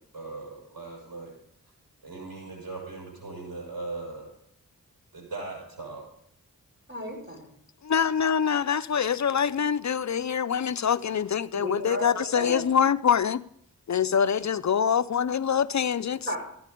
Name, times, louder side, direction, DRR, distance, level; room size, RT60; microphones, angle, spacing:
voice 1, 0.1-1.3 2.0-4.3 5.1-6.1, right 3 dB, 85° right, 6.3 m, -39 dB
voice 2, 6.9-7.5 11.5-12.6 16.2-16.4, equal, 35° right, 5.2 m, -34 dB
voice 3, 7.8-13.4 13.9-16.2, left 7 dB, 55° left, 0.6 m, -25 dB
15.0 x 9.2 x 5.2 m
cardioid pair, 45°, 35 cm